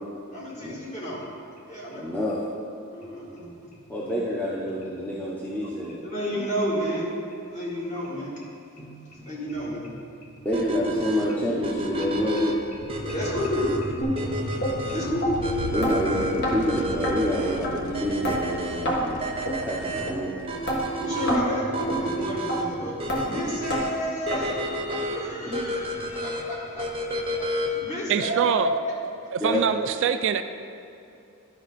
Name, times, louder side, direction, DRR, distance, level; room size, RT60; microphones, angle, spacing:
voice 1, 0.3-1.2 1.7-2.0 2.9-3.5 6.0-8.3 9.2-10.4 10.8-10.9 12.8-15.8 20.0-20.1 21.0-24.5 25.1-29.0 29.5-29.6, equal, 35° left, -6 dB, 2.2 m, -31 dB
voice 2, 1.9-2.4 3.9-6.0 8.8-9.0 10.4-12.6 15.7-20.4 25.4-25.6 29.4-29.6, equal, 5° left, -6 dB, 0.7 m, -28 dB
sound 1, 10.5-27.9, equal, 25° right, 0.7 m, -31 dB
sound 2, 12.3-22.8, left 6 dB, 75° left, 0.4 m, -41 dB
sound 3, 14.0-14.1 14.6-14.7 15.2-15.3 15.8-15.9 16.4-16.6 17.0-17.1 17.6-17.7 18.2-18.4 18.8-19.0 19.5-19.6 20.1-20.2 20.7-20.8 21.3-21.4 21.9-22.0 22.5-22.6 23.1-23.2 23.7-23.8 24.3-24.4 24.9-25.0 25.5-25.6 26.1-26.2 26.7-26.8, equal, 55° left, 1.5 m, -26 dB
voice 3, 28.1-28.7 29.3-30.4, right 8 dB, 60° right, 10 dB, 0.3 m, -24 dB
11.5 x 5.6 x 4.1 m, 2.7 s
head